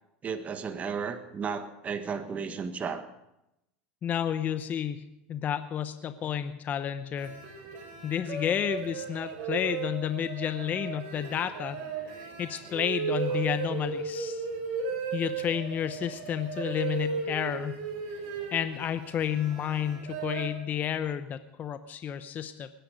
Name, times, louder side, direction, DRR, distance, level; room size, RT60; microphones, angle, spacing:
voice 1, 0.2-3.1 13.3-13.5, right 6 dB, 30° right, 8 dB, 1.6 m, -34 dB
voice 2, 4.0-7.3 8.0-11.8 12.0-14.5 15.1-17.7 18.5-22.7, left 9 dB, 35° left, 11 dB, 0.8 m, -31 dB
sound 1, 7.2-20.5, right 5 dB, 60° right, 5.0 m, -36 dB
20.5 x 10.0 x 5.2 m, 0.86 s
hypercardioid pair, 100°, 5 cm